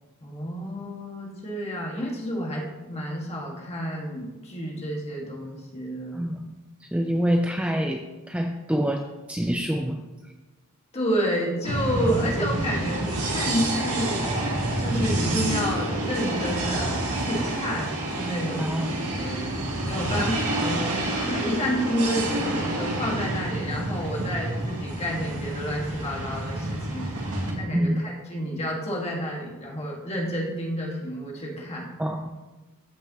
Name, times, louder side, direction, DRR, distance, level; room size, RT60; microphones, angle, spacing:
voice 1, 0.2-6.2 10.9-14.3 14.8-18.7 19.2-19.4 19.8-21.0 21.3-31.9, equal, 30° left, -2 dB, 1.7 m, -30 dB
voice 2, 6.1-10.1 18.6-18.9 20.2-20.3 27.7-28.0 32.0-32.3, equal, 5° right, 4 dB, 0.3 m, -26 dB
sound 1, 11.6-27.5, right 1 dB, 85° right, 1.8 m, -28 dB
14.0 x 5.4 x 3.0 m, 1.2 s
head